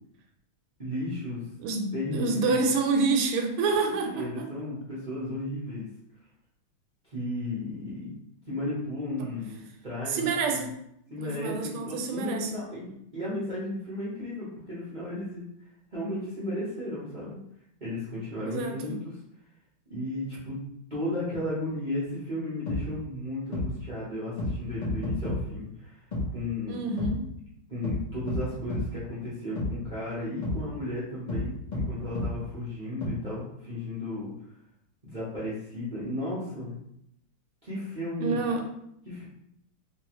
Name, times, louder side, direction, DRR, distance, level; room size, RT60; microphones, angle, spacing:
voice 1, 0.8-1.5 1.9-2.6 4.0-5.9 7.1-8.1 8.5-10.6 11.1-15.4 15.9-17.4 17.8-19.0 19.9-20.6 20.9-26.0 26.3-26.8 27.7-34.3 35.1-36.7 37.6-38.4 39.1-39.2, left 1 dB, 40° right, -9 dB, 0.6 m, -34 dB
voice 2, 1.6-4.5 10.1-10.7 11.2-12.6 18.4-19.0 26.7-27.2 38.2-38.6, right 4 dB, 85° right, 3 dB, 1.5 m, -28 dB
sound 1, 22.7-22.8 23.5-23.7 24.4-24.5 24.8-25.4 26.1-26.2 27.0-27.1 27.8-28.0 28.3-28.4 28.7-28.8 29.6-29.7 30.4-30.6 31.3-31.4 31.7-31.8 32.1-32.3 33.0-33.1, left 3 dB, 70° left, 0.4 m, -29 dB
3.3 x 3.0 x 3.0 m, 0.76 s
omnidirectional pair, 2.4 m